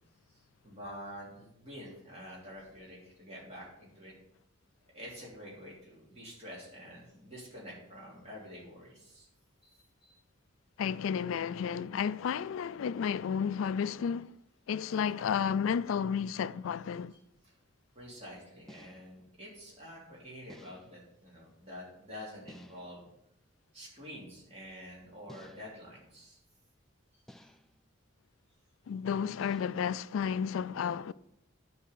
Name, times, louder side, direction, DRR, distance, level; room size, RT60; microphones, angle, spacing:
voice 1, 0.3-4.1 4.9-9.3 9.6-10.2 17.4-17.6 17.9-23.1 23.7-26.4, equal, 30° right, 3.1 m, -48 dB
voice 2, 10.8-14.3 14.7-17.1 28.9-31.1, left 7 dB, 80° left, 0.3 m, -32 dB
sound 1, 18.7-19.3 20.5-21.1 22.5-23.1 25.3-25.9 27.3-27.8 29.4-30.0, equal, ahead, 0.3 m, -54 dB
10.0 x 4.7 x 6.8 m
head